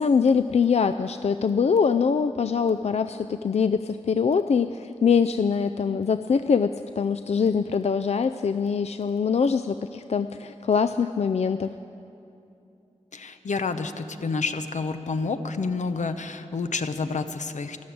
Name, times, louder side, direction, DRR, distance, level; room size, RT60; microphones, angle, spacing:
voice 1, 0.0-11.8, left 6 dB, 60° left, 11 dB, 0.4 m, -23 dB
voice 2, 13.1-17.8, left 4 dB, 80° left, 9 dB, 0.8 m, -29 dB
13.0 x 12.5 x 8.6 m, 2.8 s
wide cardioid pair, 85°, 12 cm